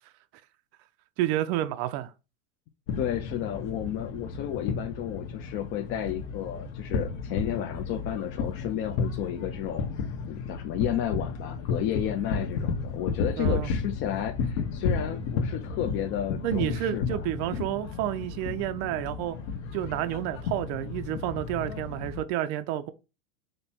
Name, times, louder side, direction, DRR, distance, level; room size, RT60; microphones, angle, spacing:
voice 1, 1.2-2.1 13.4-13.7 16.4-19.4 19.7-22.9, right 13 dB, 50° right, 0.5 m, -30 dB
sound 1, 2.9-22.2, left 4 dB, 65° left, 1.1 m, -33 dB
voice 2, 3.0-9.9 10.3-17.2, left 11 dB, 35° left, 0.5 m, -32 dB
5.2 x 2.2 x 4.3 m
supercardioid pair, 130°, 38 cm